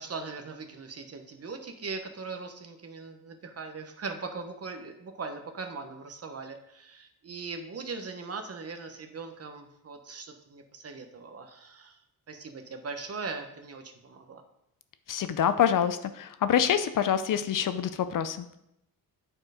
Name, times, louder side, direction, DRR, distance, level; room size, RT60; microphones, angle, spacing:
voice 1, 0.0-11.9 12.3-14.4, right 4 dB, 40° right, 5 dB, 0.9 m, -40 dB
voice 2, 15.1-18.4, left 9 dB, 60° left, 11 dB, 0.5 m, -26 dB
8.7 x 4.6 x 4.9 m, 0.80 s
wide cardioid pair, 145°, 36 cm